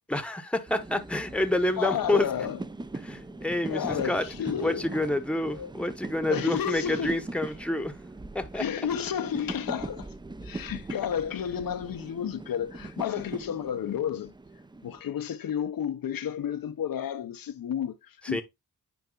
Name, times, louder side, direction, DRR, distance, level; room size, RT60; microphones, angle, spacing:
voice 1, 0.1-2.3 3.0-4.2 4.6-8.0 8.3-8.7 18.2-18.4, left 1 dB, 5° left, 0.9 m, -28 dB
sound 1, 0.7-15.0, right 2 dB, 15° right, 0.4 m, -41 dB
voice 2, 1.8-2.6 3.7-4.9 5.5-5.7 6.3-7.2 8.5-10.1 10.4-14.3 14.8-18.4, left 9 dB, 75° left, 0.7 m, -31 dB
9.3 x 4.7 x 2.2 m
cardioid pair, 80°, 35 cm